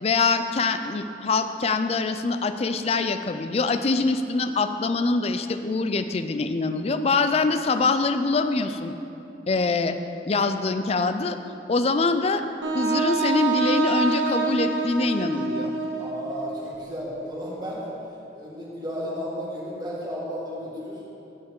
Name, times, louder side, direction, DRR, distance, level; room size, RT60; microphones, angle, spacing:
voice 1, 0.0-9.0 9.5-10.0 10.3-11.4 11.7-12.4 12.7-15.7, left 3 dB, 35° left, 9 dB, 0.4 m, -24 dB
Wind instrument woodwind instrument, 12.6-16.6, right 4 dB, 85° right, 1.1 m, -26 dB
voice 2, 16.0-17.9 18.3-21.0, equal, 25° right, -6 dB, 1.9 m, -33 dB
16.0 x 5.5 x 3.7 m, 2.8 s
head